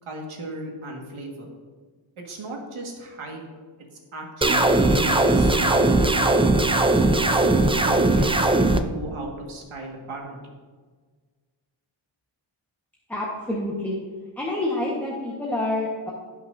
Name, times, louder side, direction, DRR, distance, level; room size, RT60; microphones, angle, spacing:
voice 1, 0.0-1.5 2.2-3.4 4.1-6.5 7.2-10.4, right 2 dB, 90° right, 0 dB, 1.8 m, -37 dB
sound 1, 4.4-8.8, right 2 dB, 15° right, 0.3 m, -19 dB
voice 2, 13.1-14.0 14.4-16.1, left 1 dB, 5° left, -4 dB, 1.2 m, -27 dB
17.0 x 5.8 x 2.6 m, 1.5 s
wide cardioid pair, 150°, 48 cm